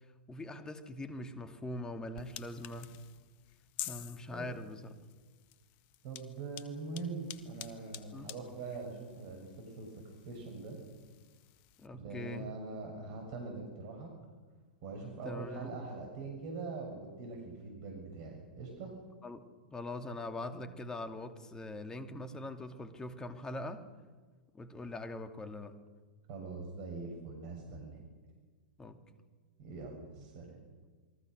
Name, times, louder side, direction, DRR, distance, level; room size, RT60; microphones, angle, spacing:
voice 1, 0.3-3.0 3.8-5.0 8.1-8.3 11.8-12.5 15.2-15.8 19.2-19.4 19.7-23.9 24.5-25.8 28.8-29.2, left 1 dB, 15° left, 7 dB, 2.5 m, -42 dB
sound 1, 2.1-11.9, left 13 dB, 40° left, 1.6 m, -50 dB
voice 2, 6.0-10.8 11.9-14.1 14.8-18.9 26.3-28.0 29.6-30.6, right 3 dB, 45° right, 2 dB, 6.7 m, -43 dB
28.5 x 23.0 x 6.4 m, 1.4 s
figure-of-eight pair, 100°, 5 cm